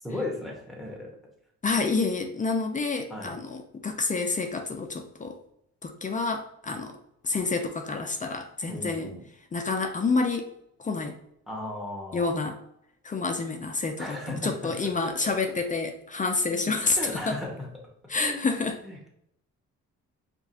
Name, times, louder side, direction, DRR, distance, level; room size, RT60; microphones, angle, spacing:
voice 1, 0.0-1.1 3.1-3.4 8.7-9.2 11.5-12.4 14.0-14.7 15.0-15.6 16.5-17.7 18.2-19.1, left 1 dB, ahead, -1 dB, 1.2 m, -36 dB
voice 2, 1.6-5.4 5.8-7.0 7.2-9.1 9.5-10.5 10.8-11.2 12.1-12.6 13.0-17.4 18.1-18.8, left 4 dB, 25° left, 5 dB, 0.5 m, -28 dB
4.6 x 2.6 x 2.8 m, 0.74 s
cardioid pair, 90°, 30 cm